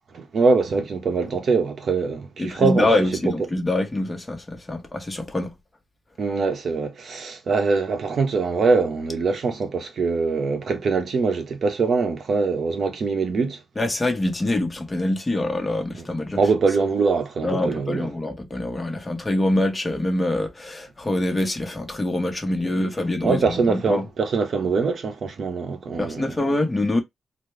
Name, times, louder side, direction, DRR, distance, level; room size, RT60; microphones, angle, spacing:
voice 1, 0.1-2.9 6.2-13.6 16.4-18.1 22.8-22.9 23.2-26.4, right 4 dB, 60° right, 1.0 m, -23 dB
voice 2, 2.4-5.5 13.8-16.4 17.4-24.0 26.0-27.0, left 1 dB, 15° left, 1.1 m, -25 dB
4.1 x 2.3 x 3.2 m
wide cardioid pair, 130°, 0 cm